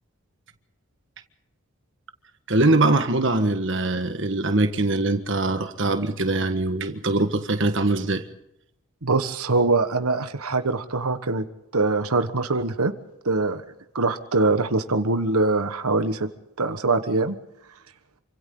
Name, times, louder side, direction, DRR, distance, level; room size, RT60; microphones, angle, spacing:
voice 1, 2.5-8.3, right 2 dB, 55° right, 8 dB, 1.5 m, -22 dB
voice 2, 9.0-11.4 11.7-12.9 13.2-13.6 13.9-16.3 16.6-17.4, right 3 dB, 85° right, 9 dB, 1.4 m, -23 dB
28.0 x 25.5 x 3.9 m, 0.83 s
head